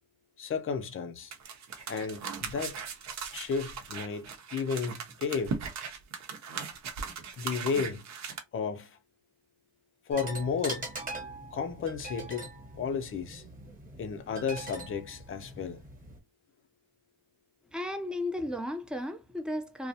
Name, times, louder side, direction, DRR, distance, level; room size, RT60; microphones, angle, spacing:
voice 1, 0.4-1.3 1.9-2.8 3.3-5.6 7.4-8.0 8.5-9.0 10.1-10.9 11.5-12.5 12.8-13.4 14.0-15.8, left 5 dB, 45° left, 0.5 m, -33 dB
sound 1, 1.3-8.4, right 6 dB, 65° right, 0.7 m, -39 dB
sound 2, 10.1-16.2, right 2 dB, 30° right, 1.0 m, -42 dB
voice 2, 17.7-19.9, left 1 dB, 5° right, 0.5 m, -34 dB
2.4 x 2.0 x 2.7 m
cardioid pair, 85°, 30 cm